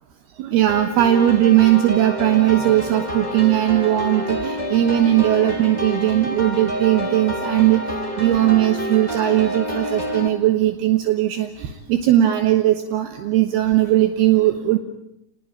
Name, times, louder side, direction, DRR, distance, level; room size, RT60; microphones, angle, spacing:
voice 1, 0.4-14.8, right 13 dB, 75° right, 7 dB, 3.1 m, -18 dB
sound 1, 0.7-10.3, equal, 30° right, 0.7 m, -28 dB
28.0 x 20.5 x 8.7 m, 0.82 s
omnidirectional pair, 4.7 m